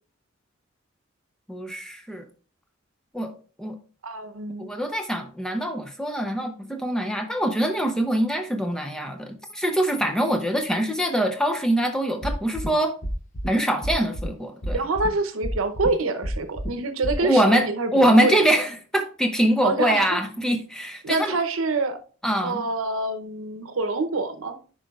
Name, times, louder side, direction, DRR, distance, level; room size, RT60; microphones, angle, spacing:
voice 1, 1.5-2.2 3.1-3.3 3.6-3.8 4.6-12.9 13.5-14.8 17.2-21.4 22.2-22.6, right 1 dB, 5° left, 0.7 m, -23 dB
voice 2, 4.0-4.7 14.7-18.4 19.6-20.2 21.0-22.0 22.4-24.6, right 3 dB, 85° right, 0.8 m, -26 dB
sound 1, 12.2-12.7 13.0-13.5 13.8-14.3 14.6-15.1 15.4-15.9 16.2-16.7 17.0-17.1, equal, 35° left, 0.9 m, -29 dB
10.5 x 5.1 x 2.4 m
head